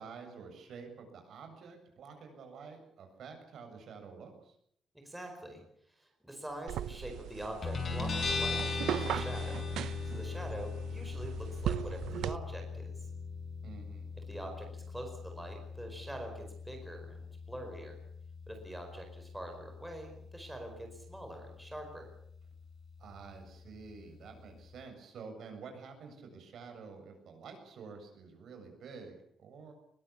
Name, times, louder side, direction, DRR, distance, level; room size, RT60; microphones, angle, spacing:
voice 1, 0.0-4.5 13.6-14.1 23.0-29.7, right 5 dB, 55° right, 5 dB, 7.7 m, -49 dB
voice 2, 5.0-5.6 5.9-9.6 10.0-13.1 14.3-18.0 18.5-22.1, right 1 dB, 5° right, 2 dB, 4.8 m, -45 dB
sound 1, 6.7-12.4, right 11 dB, 85° right, 1.0 m, -38 dB
Guitar, 7.6-24.8, left 4 dB, 30° left, 5.7 m, -40 dB
22.0 x 22.0 x 8.6 m, 0.69 s
cardioid pair, 175°, 0 cm